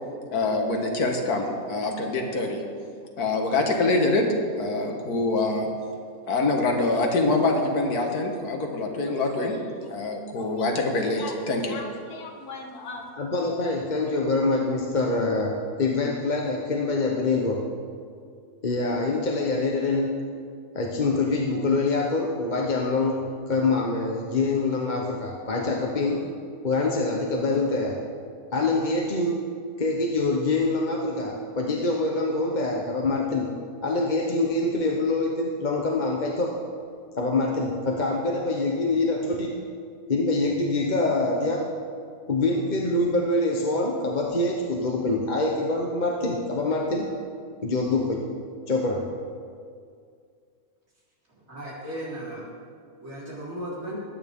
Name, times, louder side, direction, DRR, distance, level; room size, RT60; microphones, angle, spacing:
voice 1, 0.3-2.6 3.2-4.3 4.5-5.7 6.3-13.0, left 2 dB, 85° left, 2 dB, 1.9 m, -25 dB
voice 2, 13.2-17.6 18.6-20.2 20.7-26.2 26.6-28.0 28.5-29.4 29.8-33.5 33.8-36.5 37.2-39.5 40.1-41.7 42.3-47.1 47.6-48.2 48.7-49.0, left 2 dB, 35° left, -1 dB, 1.0 m, -25 dB
voice 3, 51.5-52.5 53.0-54.0, right 1 dB, 60° right, -8 dB, 4.3 m, -35 dB
20.5 x 9.1 x 3.6 m, 2.2 s
omnidirectional pair, 1.6 m